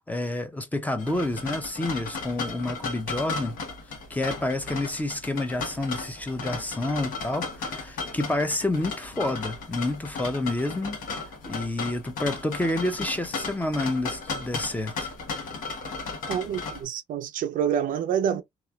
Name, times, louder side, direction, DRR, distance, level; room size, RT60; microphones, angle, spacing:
voice 1, 0.1-3.6 4.1-11.0 11.5-15.1, left 2 dB, 10° left, 0.5 m, -29 dB
sound 1, 1.0-16.8, left 4 dB, 80° left, 1.2 m, -35 dB
voice 2, 16.3-18.4, right 8 dB, 75° right, 0.5 m, -27 dB
3.0 x 2.3 x 2.2 m
cardioid pair, 135°, 14 cm